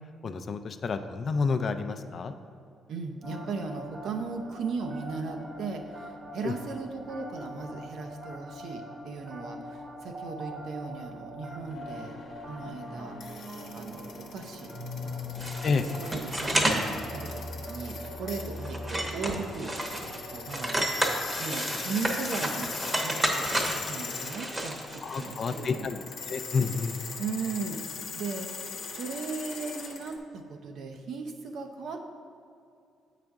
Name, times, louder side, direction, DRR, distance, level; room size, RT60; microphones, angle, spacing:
voice 1, 0.2-2.3 6.4-6.5 15.6-15.9 25.0-27.0, left 4 dB, 50° left, 9 dB, 0.4 m, -29 dB
voice 2, 2.9-12.2 12.5-13.2 13.7-14.7 15.0-15.5 15.9-19.8 20.3-20.8 21.4-22.7 23.0-25.9 26.3-26.4 27.2-27.8 28.2-28.5 28.9-32.0, right 4 dB, 70° right, 4 dB, 0.6 m, -37 dB
sound 1, 3.2-21.0, equal, 40° right, 1.0 m, -42 dB
sound 2, 11.6-30.2, left 5 dB, 65° left, 0.8 m, -41 dB
sound 3, 15.4-16.9 17.3-17.4 17.9-18.1 18.4-20.2 20.5-25.6, right 1 dB, 20° right, 0.9 m, -31 dB
7.7 x 4.9 x 3.5 m, 2.5 s
cardioid pair, 90°, 0 cm